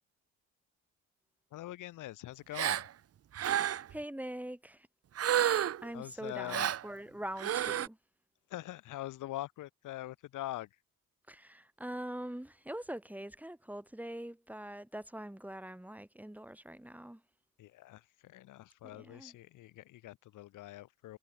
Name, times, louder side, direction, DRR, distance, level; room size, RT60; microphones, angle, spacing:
voice 1, 1.5-2.9 5.9-6.7 8.5-10.7 17.6-21.2, left 15 dB, 90° left, 5.2 m, -43 dB
Gasp, 2.5-2.9 3.3-3.9 5.2-5.9 6.5-6.8 7.4-7.9, right 10 dB, 50° right, 1.0 m, -30 dB
voice 2, 3.4-4.9 5.8-8.0 11.3-17.2 18.9-19.3, right 1 dB, 5° right, 7.2 m, -43 dB
cardioid pair, 90°, 30 cm